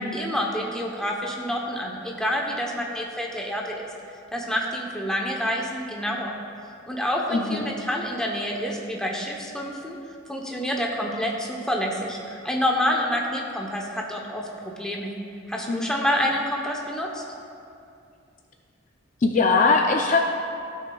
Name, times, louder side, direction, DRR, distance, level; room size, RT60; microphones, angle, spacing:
voice 1, 0.1-3.9 4.3-6.3 6.9-10.0 10.3-15.2 15.5-17.2, equal, 5° left, -1 dB, 0.7 m, -28 dB
voice 2, 7.3-7.6 15.7-15.9 19.2-20.2, left 4 dB, 40° left, 2 dB, 0.4 m, -21 dB
14.5 x 6.3 x 2.3 m, 2.5 s
head